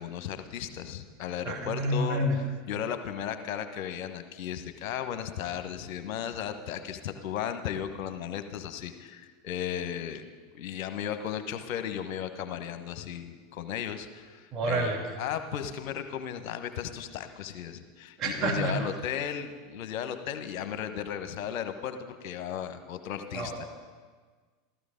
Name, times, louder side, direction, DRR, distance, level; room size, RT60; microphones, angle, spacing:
voice 1, 0.0-2.3 2.7-10.2 10.5-23.5, left 9 dB, 50° left, 9 dB, 1.1 m, -35 dB
voice 2, 1.4-2.4 14.5-15.0 18.2-18.8 23.3-23.7, right 1 dB, 35° right, 0 dB, 2.6 m, -29 dB
14.5 x 14.0 x 5.2 m, 1.5 s
figure-of-eight pair, 80°, 0 cm